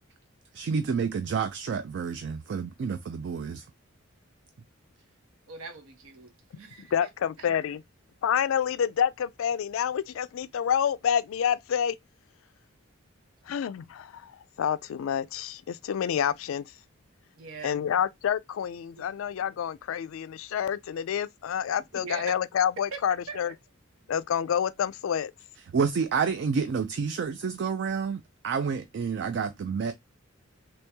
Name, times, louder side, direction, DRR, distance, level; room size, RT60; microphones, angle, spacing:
voice 1, 0.5-3.6 25.7-29.9, right 5 dB, 55° right, 0.3 m, -29 dB
voice 2, 5.5-7.1 7.4-7.5 17.4-17.8 18.9-19.1 21.9-22.4 22.9-23.5, right 4 dB, 85° right, 0.9 m, -42 dB
voice 3, 6.8-7.8 8.2-12.0 13.5-14.3 14.6-16.7 17.6-23.5 24.1-25.3, left 8 dB, 75° left, 0.3 m, -28 dB
3.0 x 2.9 x 3.3 m
head